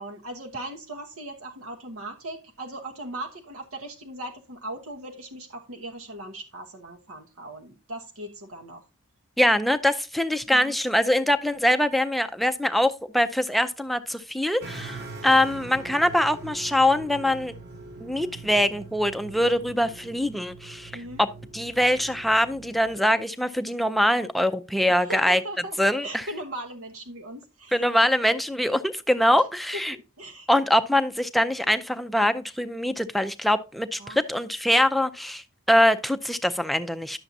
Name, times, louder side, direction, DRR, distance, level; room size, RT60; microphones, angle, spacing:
voice 1, 0.0-8.8 10.5-10.8 20.9-21.2 25.0-27.9 29.4-29.5 29.9-30.5 34.0-34.2, right 1 dB, 85° right, 1.1 m, -38 dB
voice 2, 9.4-17.5 18.0-20.9 21.2-25.4 25.8-26.2 27.7-29.9 30.5-37.2, left 1 dB, ahead, 0.4 m, -23 dB
sound 1, 14.6-23.0, right 3 dB, 50° right, 1.1 m, -42 dB
10.5 x 7.1 x 2.7 m
head